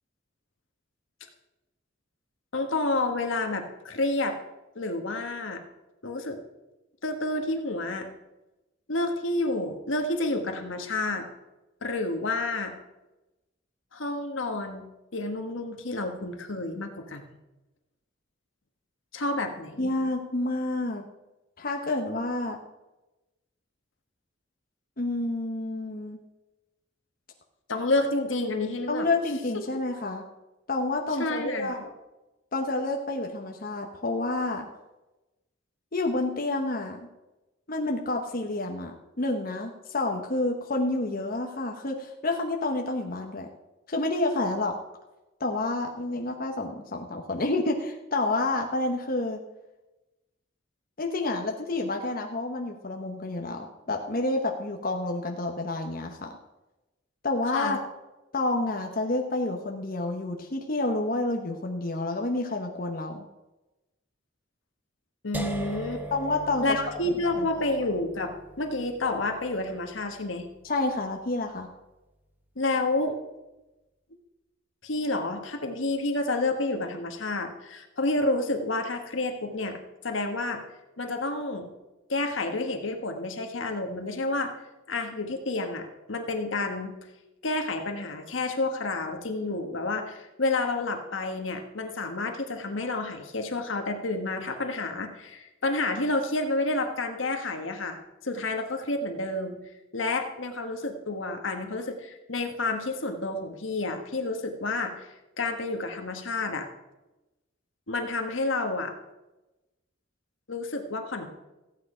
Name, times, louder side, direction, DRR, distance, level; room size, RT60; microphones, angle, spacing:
voice 1, 2.5-4.4 4.7-5.6 6.0-6.4 7.0-8.1 8.9-11.3 11.8-12.7 13.9-14.9 15.1-17.3 19.1-19.9 27.7-29.1 31.2-31.9 57.5-57.8 65.2-66.0 66.6-70.5 72.5-73.2 74.8-80.6 81.0-81.7 82.1-84.5 84.9-86.9 87.4-99.6 99.9-105.1 105.4-106.7 107.9-108.9 110.5-111.3, left 2 dB, 80° left, 5 dB, 1.5 m, -29 dB
voice 2, 19.8-21.0 21.6-22.6 25.0-26.2 28.9-30.2 30.7-31.8 32.5-34.7 35.9-37.0 37.7-43.5 43.9-44.7 45.4-49.4 51.0-56.3 57.2-57.8 58.3-63.2 66.1-66.8 67.4-67.5 70.6-71.7, left 2 dB, 45° left, 2 dB, 1.0 m, -29 dB
sound 1, 65.3-71.3, right 1 dB, 10° right, 0.9 m, -41 dB
15.0 x 8.6 x 5.0 m, 1.0 s
head